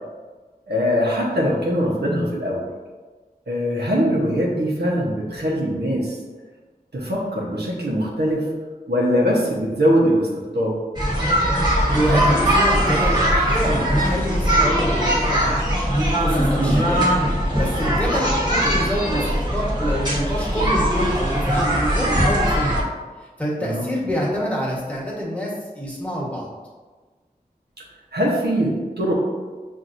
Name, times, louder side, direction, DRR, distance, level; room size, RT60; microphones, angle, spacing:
voice 1, 0.7-2.7 3.5-6.2 6.9-8.4 8.9-10.7 16.6-16.8 23.6-23.9 28.1-29.1, equal, 85° right, -4 dB, 0.9 m, -22 dB
sound 1, 11.0-22.8, equal, 25° right, 1.2 m, -20 dB
voice 2, 11.9-15.7 16.2-17.0 17.5-19.3 19.5-22.8 23.4-26.5, equal, 10° left, -6 dB, 1.3 m, -26 dB
5.8 x 2.6 x 2.6 m, 1.3 s
wide cardioid pair, 45°, 17 cm